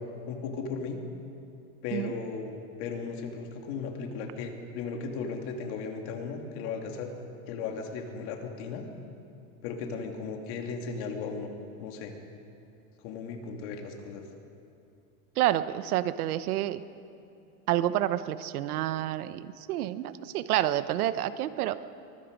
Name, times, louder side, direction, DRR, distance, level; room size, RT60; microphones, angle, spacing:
voice 1, 0.3-1.0 1.8-7.1 7.5-8.8 9.6-11.5 11.8-12.1 13.0-14.2, left 5 dB, 45° left, 3 dB, 2.6 m, -36 dB
voice 2, 15.4-16.8 17.7-21.8, right 13 dB, 70° right, 13 dB, 1.0 m, -29 dB
24.0 x 20.5 x 5.3 m, 2.6 s
supercardioid pair, 170°, 46 cm